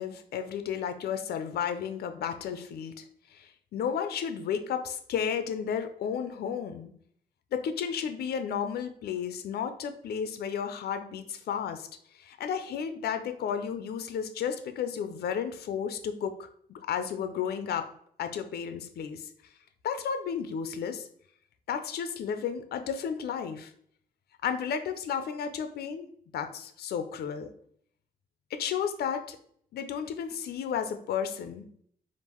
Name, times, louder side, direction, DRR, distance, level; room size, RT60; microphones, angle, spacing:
voice 1, 0.0-3.0 3.3-3.5 3.7-6.9 7.5-11.9 12.2-17.9 18.2-19.2 19.8-21.1 21.7-23.7 24.4-26.1 26.3-27.5 28.5-29.4 29.7-31.6, left 7 dB, 85° left, 9 dB, 0.5 m, -33 dB
3.6 x 2.5 x 4.4 m, 0.64 s
wide cardioid pair, 140°, 16 cm